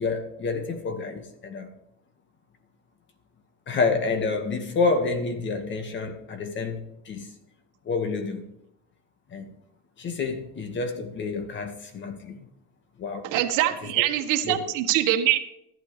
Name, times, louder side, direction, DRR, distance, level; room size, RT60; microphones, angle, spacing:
voice 1, 0.0-1.7 3.7-7.3 7.8-8.4 9.3-9.5 10.0-12.5 13.0-13.3 13.8-14.0 14.4-14.7, left 4 dB, 35° left, 7 dB, 1.9 m, -29 dB
voice 2, 13.2-15.4, right 13 dB, 65° right, 4 dB, 1.7 m, -23 dB
14.0 x 11.5 x 3.4 m, 0.81 s
cardioid pair, 140°, 35 cm